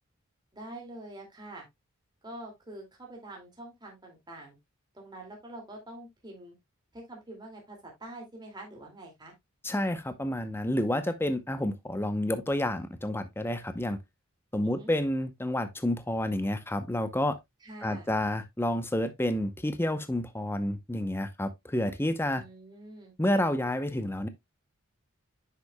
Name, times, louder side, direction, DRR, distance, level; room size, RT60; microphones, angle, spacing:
voice 1, 0.5-1.7 2.2-4.6 4.9-6.6 6.9-9.3 14.6-14.9 17.6-18.1 22.3-23.2, right 1 dB, 20° right, 2.3 m, -45 dB
voice 2, 9.6-14.0 14.5-17.4 17.8-22.4 23.2-24.3, left 1 dB, 10° left, 0.7 m, -29 dB
9.6 x 6.8 x 2.2 m
head